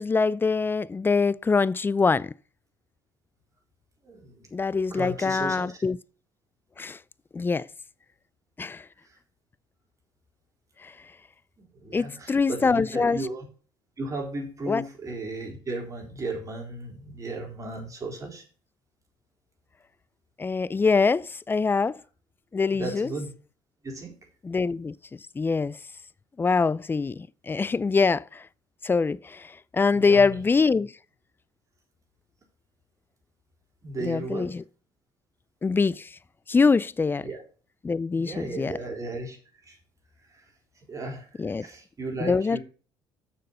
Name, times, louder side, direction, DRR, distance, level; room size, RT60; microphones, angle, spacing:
voice 1, 0.0-2.3 4.5-6.0 6.8-7.0 7.3-7.7 8.6-8.8 10.8-10.9 11.9-13.2 14.7-14.8 20.4-22.0 22.5-23.1 24.4-25.8 26.4-28.4 28.8-30.9 34.0-34.6 35.6-36.1 36.5-37.3 37.8-38.7 41.4-41.6 42.2-42.6, left 4 dB, 20° left, 0.4 m, -24 dB
voice 2, 4.0-5.8 9.0-9.2 11.6-13.5 14.0-18.4 22.7-23.3 23.8-24.1 29.9-30.4 33.8-34.5 37.2-37.4 38.1-39.4 39.6-39.8 40.2-40.5 40.9-42.6, right 2 dB, 30° right, 4.0 m, -35 dB
6.6 x 6.6 x 6.6 m
supercardioid pair, 75°, 11 cm